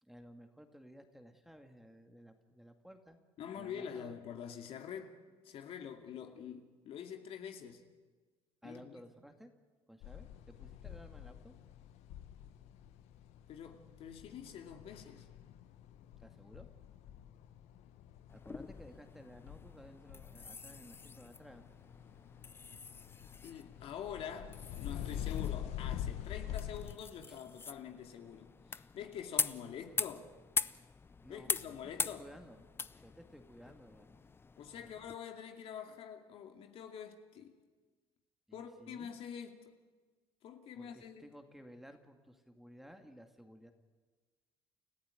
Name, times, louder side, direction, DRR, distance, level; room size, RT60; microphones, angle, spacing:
voice 1, 0.0-3.2 3.6-4.2 8.6-9.5 9.9-11.6 16.2-16.7 18.3-21.7 27.3-27.4 31.2-32.6 32.9-34.2 34.8-34.9 38.5-39.1 40.7-43.7, equal, ahead, 2.1 m, -55 dB
voice 2, 3.4-7.8 8.6-9.0 13.5-15.3 23.4-30.3 31.3-32.2 34.6-37.6 38.5-39.7 40.4-41.3, left 8 dB, 60° left, 2.5 m, -46 dB
sound 1, 10.0-27.0, left 11 dB, 75° left, 1.3 m, -46 dB
sound 2, 18.3-35.2, left 4 dB, 20° left, 0.6 m, -43 dB
29.5 x 14.5 x 9.2 m
cardioid pair, 110°, 11 cm